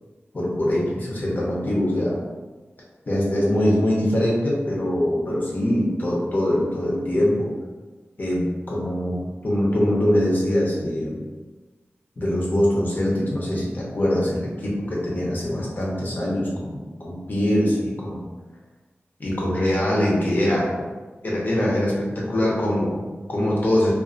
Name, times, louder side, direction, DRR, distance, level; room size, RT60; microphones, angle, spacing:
voice 1, 0.3-2.2 3.1-7.5 8.2-11.2 12.2-18.2 19.2-20.9 21.2-23.9, left 1 dB, 45° left, -4 dB, 0.7 m, -23 dB
2.5 x 2.4 x 2.5 m, 1.3 s
wide cardioid pair, 95°, 4 cm